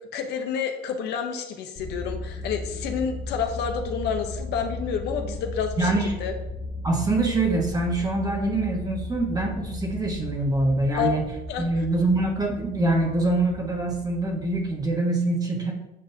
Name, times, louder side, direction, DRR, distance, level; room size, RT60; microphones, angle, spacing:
voice 1, 0.1-6.3 11.0-11.2 11.5-11.6, left 7 dB, 80° left, 5 dB, 0.8 m, -29 dB
sound 1, 1.7-14.9, left 2 dB, 45° left, 1.1 m, -36 dB
voice 2, 5.8-6.1 6.8-11.2 11.6-15.7, right 2 dB, 20° right, 0 dB, 1.3 m, -24 dB
7.8 x 5.0 x 2.7 m, 0.93 s
cardioid pair, 110°, 17 cm